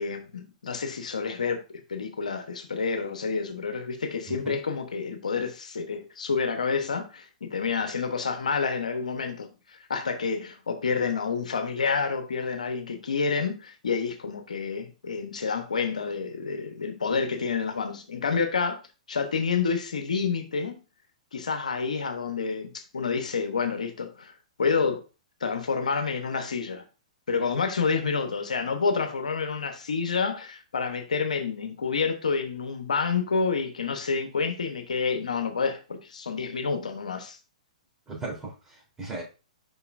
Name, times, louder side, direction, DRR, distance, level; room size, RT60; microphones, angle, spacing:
voice 1, 0.0-18.8 19.1-20.8 21.3-24.3 24.6-25.0 25.4-26.8 27.3-37.4, left 5 dB, 80° left, 1.0 m, -29 dB
voice 2, 38.1-39.2, right 3 dB, 10° right, 3.5 m, -37 dB
6.8 x 5.5 x 2.6 m
hypercardioid pair, 120°, 4 cm